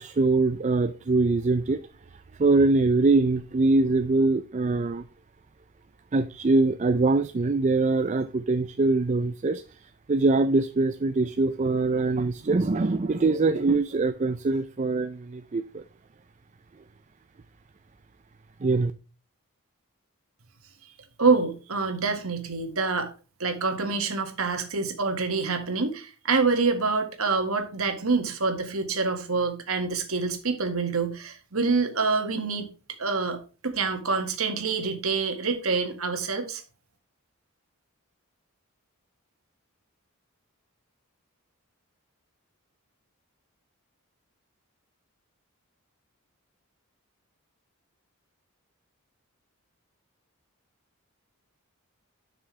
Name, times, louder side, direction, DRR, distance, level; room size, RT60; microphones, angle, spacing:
voice 1, 0.0-1.8 2.4-5.0 6.1-9.6 10.1-15.8 18.6-18.9, right 3 dB, 30° right, 0.4 m, -23 dB
voice 2, 21.2-23.1 23.4-32.7 33.0-36.6, right 4 dB, 70° right, 1.9 m, -26 dB
11.0 x 6.2 x 3.2 m
head